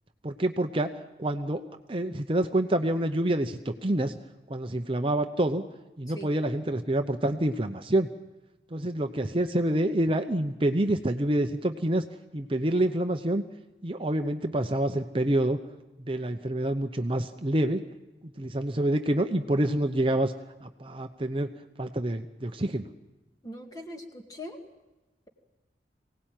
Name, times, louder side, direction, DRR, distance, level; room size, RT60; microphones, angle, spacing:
voice 1, 0.2-0.9 1.2-1.6 1.9-4.2 4.5-5.6 6.0-8.1 8.7-12.0 12.3-13.4 13.8-15.6 16.1-17.8 18.2-20.3 20.6-21.5 21.8-22.9, right 1 dB, 30° right, 7 dB, 0.8 m, -27 dB
voice 2, 23.4-24.6, left 1 dB, 20° left, 3 dB, 2.3 m, -41 dB
24.0 x 18.0 x 9.1 m, 1.1 s
head